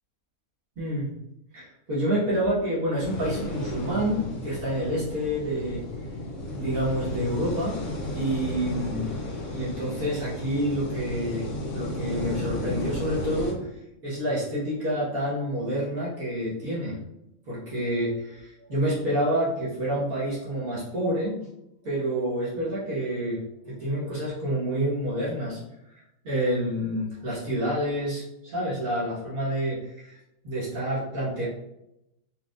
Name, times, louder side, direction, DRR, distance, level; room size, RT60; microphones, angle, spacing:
voice 1, 0.8-1.1 1.5-5.8 6.5-7.8 8.1-9.2 9.5-11.5 11.7-13.7 14.0-17.0 17.5-21.4 21.8-25.6 26.2-30.2 30.4-31.5, equal, 75° right, -9 dB, 1.7 m, -28 dB
sound 1, 3.0-13.5, left 1 dB, 60° left, 1.1 m, -33 dB
4.4 x 3.5 x 2.4 m, 0.85 s
omnidirectional pair, 1.5 m